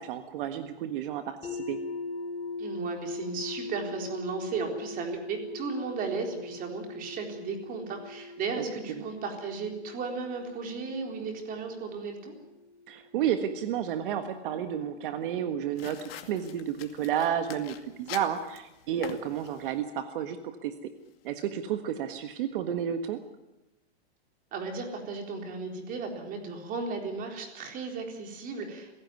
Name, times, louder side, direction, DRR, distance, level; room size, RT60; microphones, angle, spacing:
voice 1, 0.0-1.8 9.0-9.1 12.9-20.7 21.2-23.2, right 9 dB, 50° right, 8 dB, 1.6 m, -31 dB
sound 1, 1.4-13.3, left 3 dB, 20° left, 4.1 m, -41 dB
voice 2, 2.6-12.4 24.5-29.0, right 4 dB, 25° right, 4 dB, 4.0 m, -35 dB
sound 2, 15.8-19.8, left 11 dB, 60° left, 2.4 m, -45 dB
24.0 x 16.5 x 9.6 m, 0.96 s
hypercardioid pair, 150°, 33 cm